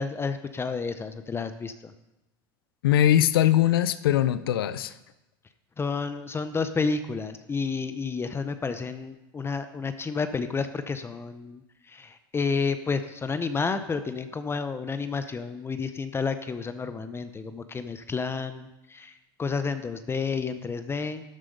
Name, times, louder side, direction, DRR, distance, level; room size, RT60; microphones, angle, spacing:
voice 1, 0.0-1.9 5.8-21.2, left 4 dB, 20° left, 10 dB, 0.7 m, -30 dB
voice 2, 2.8-4.9, left 12 dB, 90° left, 14 dB, 0.6 m, -21 dB
13.0 x 7.5 x 5.3 m, 0.96 s
supercardioid pair, 100°, 12 cm